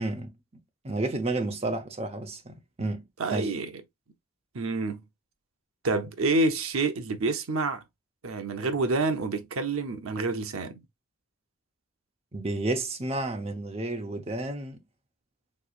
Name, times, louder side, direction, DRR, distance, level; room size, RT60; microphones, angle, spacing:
voice 1, 0.0-3.0 3.3-3.5 12.3-14.8, right 2 dB, 30° right, 0.7 m, -31 dB
voice 2, 3.2-3.7 4.5-5.0 5.8-7.8 8.2-10.8, right 3 dB, 85° right, 0.7 m, -28 dB
3.7 x 3.1 x 2.4 m
head